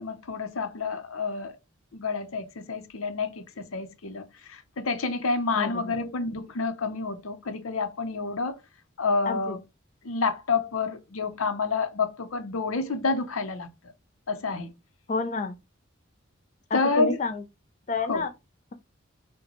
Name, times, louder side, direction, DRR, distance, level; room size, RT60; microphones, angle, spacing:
voice 1, 0.0-1.5 1.9-8.6 9.0-9.6 10.0-13.7 14.3-14.7 16.7-17.2 18.1-18.3, left 4 dB, 85° left, 0.7 m, -29 dB
voice 2, 9.3-9.6 15.1-15.5 16.7-17.4 17.9-18.3, left 3 dB, 35° left, 0.5 m, -29 dB
6.2 x 2.2 x 2.9 m
head